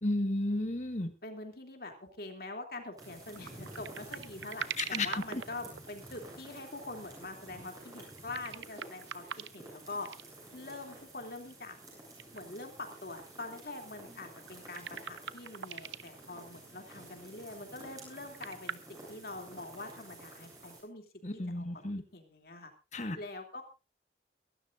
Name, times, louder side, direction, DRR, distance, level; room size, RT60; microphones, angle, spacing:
voice 1, 0.0-1.1 4.8-5.4 21.2-22.0 22.9-23.2, left 2 dB, 40° left, 8 dB, 1.7 m, -33 dB
voice 2, 1.2-10.1 10.5-11.8 12.3-21.0 21.3-21.9 22.1-22.7 23.2-23.6, left 2 dB, 55° left, 4 dB, 2.9 m, -44 dB
sound 1, 3.0-20.8, right 2 dB, 20° right, 7.8 m, -51 dB
sound 2, 3.4-6.3 8.1-9.7 10.0-10.3 11.5-11.6 12.2-12.4 12.7-12.8 14.1-16.2 18.1-18.7, right 7 dB, 90° right, 0.8 m, -42 dB
23.5 x 13.0 x 2.6 m, 0.30 s
head